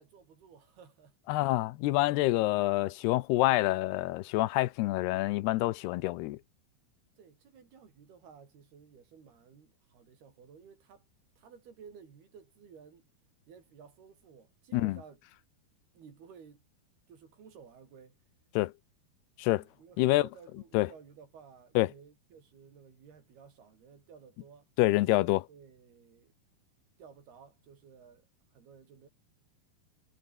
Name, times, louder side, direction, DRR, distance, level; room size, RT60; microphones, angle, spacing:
voice 1, 0.0-1.2 7.2-11.1 11.4-13.1 13.5-15.2 15.9-16.6 17.1-18.2 19.4-26.3 27.0-29.1, right 6 dB, 75° right, 6.2 m, -55 dB
voice 2, 1.3-6.4 14.7-15.0 18.6-18.7 19.4-19.6 20.0-20.3 20.7-20.9 21.8-21.9 24.8-25.4, left 18 dB, 90° left, 2.8 m, -27 dB
omnidirectional pair, 4.6 m